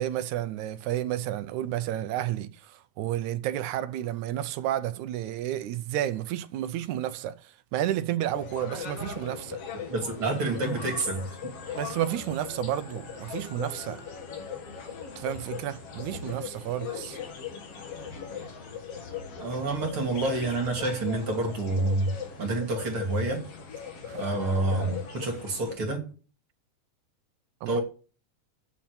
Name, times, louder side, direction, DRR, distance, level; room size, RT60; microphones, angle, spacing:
voice 1, 0.0-9.6 11.7-14.0 15.2-17.2 24.0-24.2 27.6-27.8, right 12 dB, 85° right, 2.1 m, -31 dB
sound 1, 8.3-25.8, left 7 dB, 55° left, 2.6 m, -39 dB
voice 2, 9.9-11.8 19.4-22.1 22.4-23.4 24.1-26.0 27.7-27.8, right 2 dB, 45° right, 3.5 m, -28 dB
7.6 x 7.3 x 8.5 m
omnidirectional pair, 3.4 m